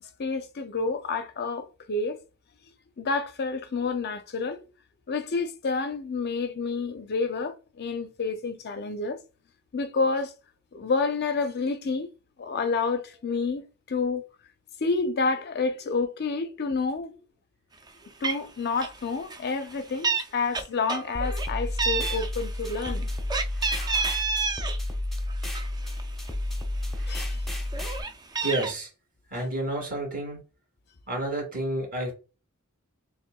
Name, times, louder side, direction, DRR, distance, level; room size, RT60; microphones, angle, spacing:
voice 1, 0.0-2.2 3.0-4.7 5.1-9.2 9.7-10.3 10.7-12.1 12.4-14.3 14.8-17.2 18.2-23.1 27.1-27.4, left 4 dB, 50° left, 0.5 m, -29 dB
Meow, 17.9-18.0 18.2-18.5 18.8-19.0 19.3-20.2 20.5-21.5 21.8-24.8 25.2-26.3 26.8-26.9 27.2-28.7, right 4 dB, 20° right, 0.4 m, -30 dB
sound 1, 21.1-28.0, left 1 dB, ahead, 0.8 m, -31 dB
voice 2, 28.4-28.9 29.3-30.4 31.1-32.1, right 1 dB, 45° right, 2.3 m, -30 dB
6.5 x 2.5 x 2.3 m
head